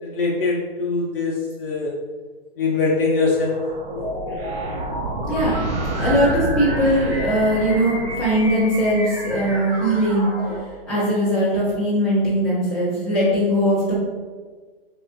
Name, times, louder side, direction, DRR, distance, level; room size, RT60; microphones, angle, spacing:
voice 1, 0.0-1.9 2.6-3.6, left 3 dB, 60° left, -3 dB, 0.6 m, -22 dB
sound 1, 3.3-8.7, right 2 dB, 70° right, 0.7 m, -29 dB
sound 2, 3.9-10.6, equal, 25° right, 0.4 m, -31 dB
voice 2, 5.3-5.6 6.0-10.3 10.8-14.0, equal, ahead, -12 dB, 0.7 m, -20 dB
3.5 x 2.4 x 2.5 m, 1.4 s
hypercardioid pair, 155°, 31 cm